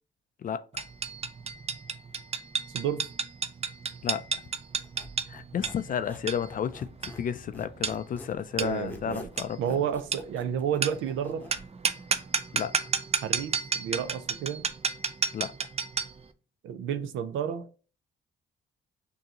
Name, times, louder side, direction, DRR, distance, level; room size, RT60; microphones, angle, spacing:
voice 1, 0.4-0.9 4.0-4.2 5.3-9.6 12.5-12.7 15.3-15.5, left 8 dB, 45° left, 0.4 m, -32 dB
sound 1, 0.8-16.2, right 5 dB, 30° right, 0.5 m, -32 dB
voice 2, 2.7-3.1 8.6-9.3 9.6-11.5 13.2-14.6 16.6-17.7, right 8 dB, 80° right, 0.5 m, -31 dB
Squeak, 4.8-7.3 7.5-11.6, left 1 dB, 10° left, 0.9 m, -46 dB
6.4 x 2.7 x 2.8 m
cardioid pair, 90°, 20 cm